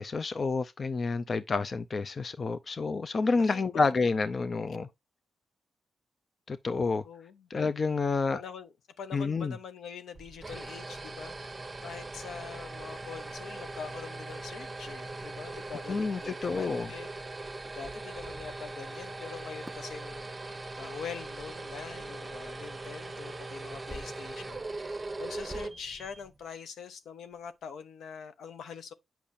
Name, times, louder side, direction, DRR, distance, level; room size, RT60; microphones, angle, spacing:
voice 1, 0.0-4.9 6.5-7.0 7.5-8.4 9.1-9.5 15.9-16.9, left 4 dB, 45° left, 0.5 m, -29 dB
voice 2, 3.3-3.8 7.1-7.5 8.3-11.6 11.8-17.5 17.7-28.9, left 6 dB, 80° left, 0.8 m, -44 dB
sound 1, 10.1-26.4, right 2 dB, 20° right, 0.9 m, -40 dB
sound 2, 19.7-19.9 21.1-21.2 22.5-22.7 23.9-24.4 24.8-24.9 25.4-25.9 26.5-26.6 26.9-27.0 27.3-27.6, equal, ahead, 0.6 m, -46 dB
8.5 x 5.8 x 2.6 m
cardioid pair, 95°, 0 cm